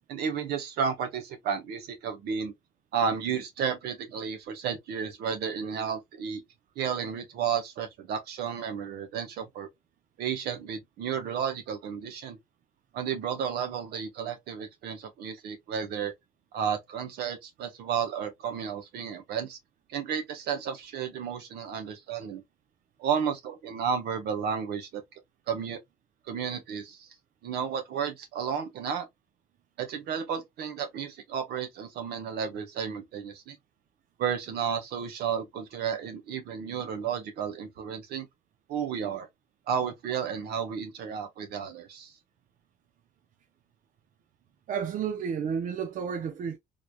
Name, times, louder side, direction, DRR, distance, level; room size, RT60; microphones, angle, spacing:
voice 1, 0.1-2.5 2.9-6.4 6.8-9.7 10.2-12.4 12.9-16.1 16.5-19.6 19.9-22.4 23.0-25.0 25.5-25.8 26.3-27.1 27.4-29.1 29.8-33.6 34.2-38.3 38.7-39.3 39.7-42.1, right 7 dB, 75° right, 1.1 m, -32 dB
voice 2, 44.7-46.6, right 7 dB, 50° right, 0.6 m, -31 dB
3.9 x 3.3 x 2.3 m
cardioid pair, 110°, 17 cm